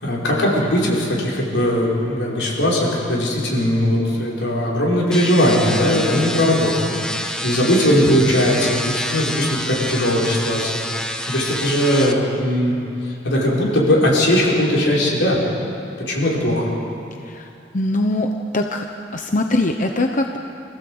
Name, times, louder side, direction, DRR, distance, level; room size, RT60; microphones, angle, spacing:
voice 1, 0.0-12.8 13.2-15.4 16.1-16.7, left 1 dB, 85° left, -4 dB, 5.6 m, -19 dB
sound 1, 5.1-12.1, equal, 5° left, 1.3 m, -28 dB
voice 2, 17.7-18.3 18.5-18.8 19.1-20.4, left 2 dB, 45° left, 4 dB, 1.0 m, -21 dB
26.0 x 16.0 x 8.1 m, 2.6 s
head